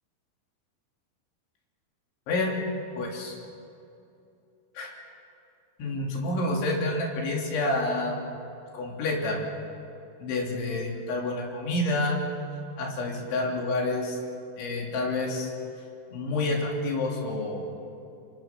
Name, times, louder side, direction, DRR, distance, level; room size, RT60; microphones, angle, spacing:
voice 1, 2.3-2.6 3.0-3.4 4.8-4.9 5.8-8.4 8.7-9.4 10.2-12.2 12.8-14.2 14.6-15.5 16.1-17.7, left 2 dB, 80° left, -1 dB, 5.6 m, -28 dB
27.0 x 24.0 x 6.0 m, 2.7 s
omnidirectional pair, 5.3 m